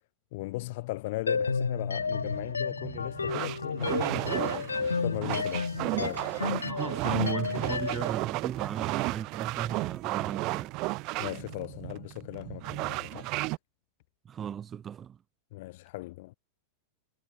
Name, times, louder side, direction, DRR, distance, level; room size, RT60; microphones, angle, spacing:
voice 1, 0.3-4.8 5.0-6.3 11.2-13.3 15.5-16.3, left 20 dB, 50° left, 1.9 m, -38 dB
sound 1, 1.3-8.1, left 5 dB, 75° left, 0.6 m, -32 dB
sound 2, 2.0-13.6, right 24 dB, 40° right, 2.3 m, -34 dB
voice 2, 6.4-10.8 14.3-15.2, right 8 dB, 25° right, 1.3 m, -36 dB
figure-of-eight pair, 90°, 0 cm